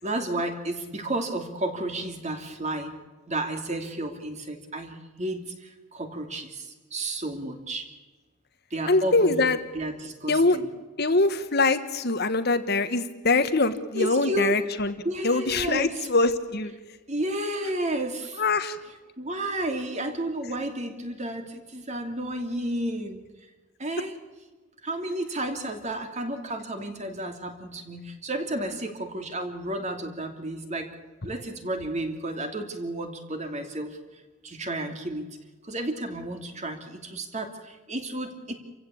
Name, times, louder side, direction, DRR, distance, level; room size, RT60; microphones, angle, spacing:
voice 1, 0.0-2.9 3.3-7.9 8.7-10.7 13.9-14.6 15.0-16.1 17.1-18.4 18.9-23.2 23.8-24.1 24.8-30.9 31.2-35.3 35.6-38.5, right 1 dB, 30° right, 5 dB, 2.8 m, -32 dB
voice 2, 8.9-9.6 10.3-10.6 11.0-14.9 15.2-16.7 18.4-18.8, left 3 dB, 45° left, 10 dB, 1.3 m, -23 dB
28.5 x 16.0 x 8.6 m, 1.3 s
head